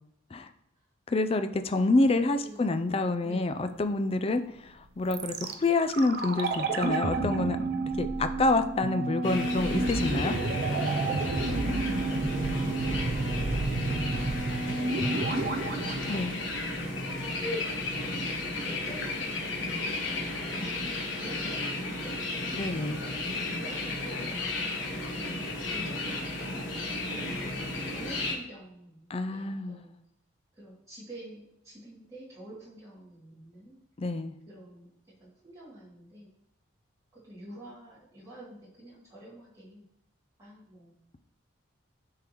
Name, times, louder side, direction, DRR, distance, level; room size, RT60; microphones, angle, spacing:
voice 1, 1.1-7.6 8.0-10.3 16.1-16.3 22.5-23.0 29.1-29.8 34.0-34.3, left 2 dB, 30° left, 9 dB, 0.3 m, -27 dB
voice 2, 1.7-2.8 3.2-3.7 12.1-12.9 13.9-15.9 18.7-20.1 20.5-22.6 23.5-24.4 25.1-30.0 30.5-33.8 34.5-34.9 35.2-36.3 37.1-39.9 40.4-41.0, right 1 dB, 15° right, -9 dB, 2.6 m, -48 dB
sound 1, 5.1-17.1 17.4-17.5, right 3 dB, 50° right, 0.5 m, -30 dB
sound 2, 9.2-28.3, left 2 dB, 70° left, 1.3 m, -33 dB
10.5 x 3.8 x 3.0 m, 0.76 s
head